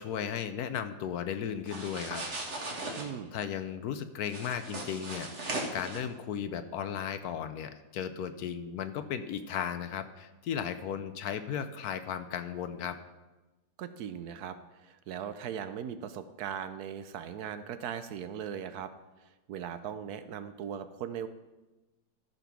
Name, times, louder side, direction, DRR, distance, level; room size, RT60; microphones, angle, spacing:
voice 1, 0.0-2.2 3.3-5.3 5.7-13.0, left 8 dB, 70° left, 11 dB, 1.1 m, -35 dB
sound 1, 1.7-3.0 4.2-6.0, right 2 dB, 45° right, 1.8 m, -38 dB
voice 2, 3.0-3.4 13.8-18.9 19.2-21.3, right 8 dB, 70° right, 11 dB, 1.1 m, -39 dB
14.0 x 5.3 x 5.9 m, 1.1 s
omnidirectional pair, 1.8 m